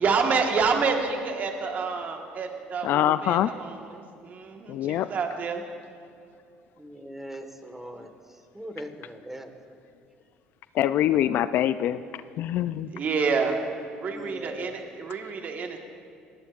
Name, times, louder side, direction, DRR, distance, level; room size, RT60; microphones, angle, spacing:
voice 1, 0.0-5.6 12.9-13.6 13.9-15.8, right 5 dB, 45° right, 3 dB, 1.5 m, -28 dB
voice 2, 2.8-3.5 4.7-5.1 10.8-12.0 12.4-12.9, left 12 dB, 65° left, 13 dB, 0.4 m, -24 dB
voice 3, 6.8-8.1 8.5-9.5 14.1-14.7, equal, 10° right, 6 dB, 1.6 m, -40 dB
19.0 x 18.0 x 2.5 m, 2.5 s
supercardioid pair, 80°, 4 cm